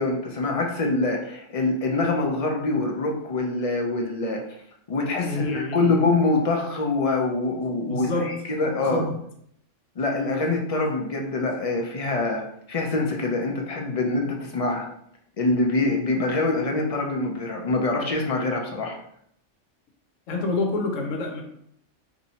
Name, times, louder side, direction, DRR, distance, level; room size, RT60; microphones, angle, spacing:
voice 1, 0.0-4.4 4.9-9.0 10.0-12.4 12.7-14.9 15.4-19.0, left 2 dB, 65° left, 0 dB, 0.3 m, -25 dB
voice 2, 5.2-5.9 7.9-8.4 8.8-9.1 20.3-21.4, left 2 dB, 85° left, 2 dB, 1.1 m, -27 dB
2.7 x 2.6 x 4.1 m, 0.70 s
omnidirectional pair, 1.3 m